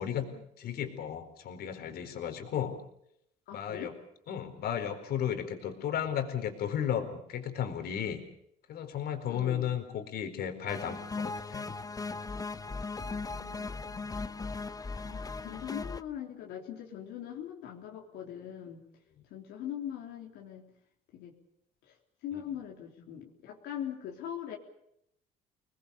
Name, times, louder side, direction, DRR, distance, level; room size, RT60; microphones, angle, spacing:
voice 1, 0.0-0.4 3.5-3.9 9.3-9.7 13.0-14.3 15.0-18.8 19.3-20.7 21.1-21.4 21.8-22.0 22.2-24.6, left 10 dB, 85° left, 0 dB, 3.7 m, -42 dB
voice 2, 0.6-2.8 3.5-3.9 4.3-8.2 8.7-11.7 14.2-14.3, left 9 dB, 65° left, 7 dB, 4.4 m, -34 dB
sound 1, 10.7-16.0, left 3 dB, 20° left, 1.0 m, -38 dB
27.0 x 20.5 x 7.1 m, 0.75 s
cardioid pair, 110°, 17 cm